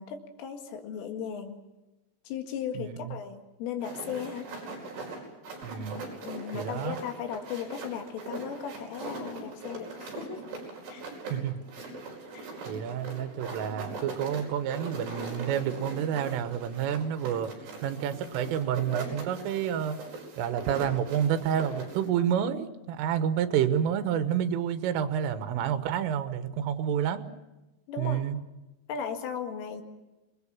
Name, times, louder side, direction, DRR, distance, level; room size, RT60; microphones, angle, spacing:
voice 1, 0.0-1.6 2.3-4.5 6.2-10.4 10.9-11.1 12.3-12.5 27.9-28.3 28.9-29.8, left 7 dB, 85° left, 5 dB, 4.5 m, -36 dB
voice 2, 2.8-3.2 5.6-6.0 6.5-7.0 11.3-11.6 12.7-17.5 17.8-20.0 20.4-27.2 28.0-28.4, right 9 dB, 90° right, 10 dB, 3.8 m, -29 dB
sound 1, 3.8-22.1, right 3 dB, 60° right, 6.8 m, -41 dB
26.5 x 20.5 x 7.2 m, 1.0 s
omnidirectional pair, 5.6 m